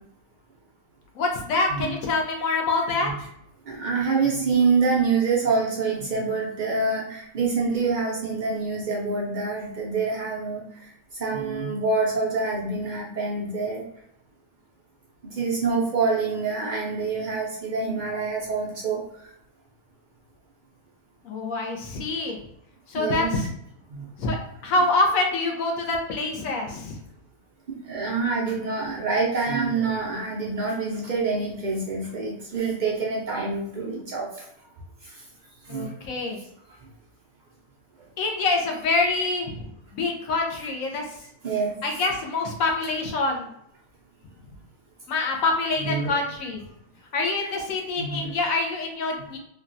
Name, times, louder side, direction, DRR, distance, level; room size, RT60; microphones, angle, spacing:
voice 1, 1.2-3.1 21.2-22.4 22.9-23.5 24.2-24.4 24.6-27.0 35.7-36.4 38.2-39.5 39.9-41.0 41.8-43.5 45.1-46.6 47.1-49.4, left 3 dB, 70° left, 1 dB, 1.0 m, -25 dB
voice 2, 3.6-13.8 15.3-19.3 22.9-23.3 23.9-24.1 27.7-34.5 35.0-35.2 35.6-35.9 39.2-39.3 41.4-42.0 45.8-46.2 48.0-48.3, right 4 dB, 75° right, -3 dB, 0.4 m, -26 dB
3.3 x 2.2 x 2.5 m, 0.75 s
omnidirectional pair, 1.6 m